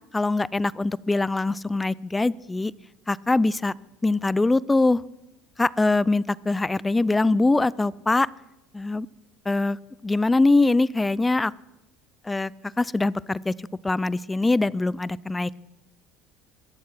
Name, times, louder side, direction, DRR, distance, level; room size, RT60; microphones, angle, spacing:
voice 1, 0.1-2.7 3.1-3.7 4.0-5.0 5.6-8.3 8.7-9.1 9.5-9.8 10.0-11.5 12.3-12.5 12.8-13.5 13.8-15.6, left 2 dB, 15° left, 22 dB, 0.4 m, -22 dB
21.0 x 7.3 x 6.1 m, 0.93 s
supercardioid pair, 105°, 0 cm